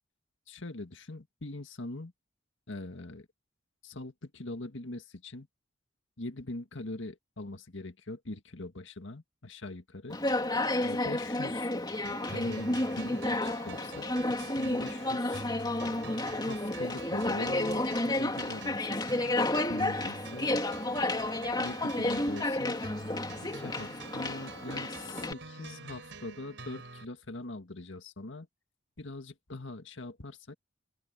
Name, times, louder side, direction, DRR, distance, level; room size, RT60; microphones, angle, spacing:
voice 1, 0.5-2.1 2.7-3.3 3.8-5.5 6.2-10.2 10.8-11.7 12.2-14.1 14.6-15.4 16.4-19.0 19.4-20.6 21.5-22.9 23.5-28.5 29.0-30.6, left 2 dB, 80° left, 1.9 m, -42 dB
Conversation, 10.1-25.3, left 2 dB, 20° left, 2.9 m, -31 dB
sound 1, 12.0-27.0, right 3 dB, 70° right, 5.1 m, -46 dB
open air
head